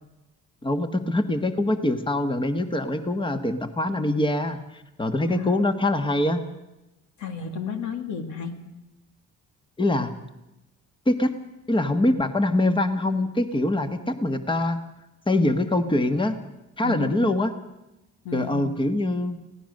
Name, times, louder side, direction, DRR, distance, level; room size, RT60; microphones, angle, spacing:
voice 1, 0.6-6.4 9.8-10.1 11.1-11.3 11.7-14.8 15.3-16.4 16.8-17.5 18.3-19.4, left 1 dB, 15° left, 9 dB, 1.5 m, -24 dB
voice 2, 7.2-8.6 16.8-17.3 18.2-18.7, left 6 dB, 75° left, 7 dB, 2.4 m, -32 dB
25.0 x 17.0 x 6.6 m, 0.97 s
cardioid pair, 90°, 30 cm